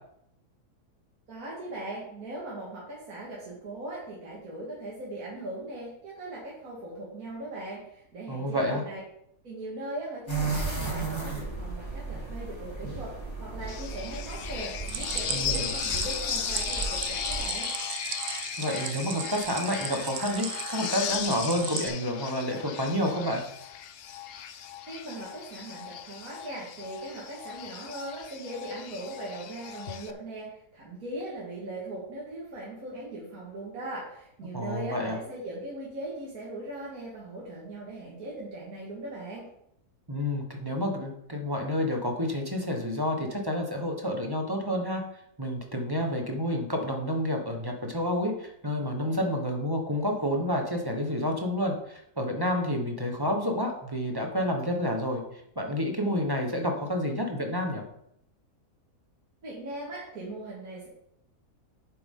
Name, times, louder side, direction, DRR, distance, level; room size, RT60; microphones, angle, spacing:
voice 1, 1.3-9.0 9.4-17.7 24.9-39.5 59.4-60.9, right 1 dB, 60° right, -6 dB, 2.4 m, -39 dB
voice 2, 8.3-8.8 15.3-15.7 18.6-23.4 34.5-35.2 40.1-45.0 45.4-55.2 55.6-57.8, left 1 dB, 15° right, 2 dB, 1.1 m, -29 dB
sound 1, 10.3-17.4, right 4 dB, 15° left, 2.8 m, -35 dB
sound 2, 13.7-30.1, left 9 dB, 80° left, 0.5 m, -36 dB
Stream, 14.9-21.9, right 9 dB, 85° right, 1.3 m, -37 dB
9.2 x 7.5 x 3.8 m, 0.74 s
omnidirectional pair, 1.7 m